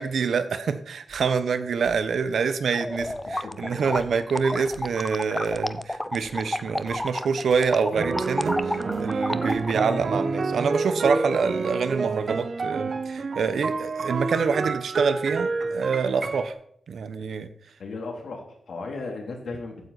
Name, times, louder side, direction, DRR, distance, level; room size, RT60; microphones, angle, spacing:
voice 1, 0.0-16.5 16.9-17.5, right 5 dB, 80° right, 12 dB, 1.1 m, -26 dB
sound 1, 1.1-1.2 1.8-2.1 3.0-3.2 3.9-4.1 4.7-4.8 5.5-5.7 6.2-6.4 6.9-7.0 7.5-7.7 8.5-8.6 8.9-9.0 9.5-9.7, equal, 15° right, 3.5 m, -49 dB
sound 2, 2.7-9.7, left 1 dB, 10° left, 0.6 m, -31 dB
voice 2, 3.3-3.7 17.8-19.9, left 3 dB, 75° left, 2 dB, 3.3 m, -36 dB
sound 3, 7.9-16.5, right 4 dB, 50° right, 1.0 m, -28 dB
15.0 x 9.3 x 4.2 m, 0.69 s
wide cardioid pair, 130°, 0 cm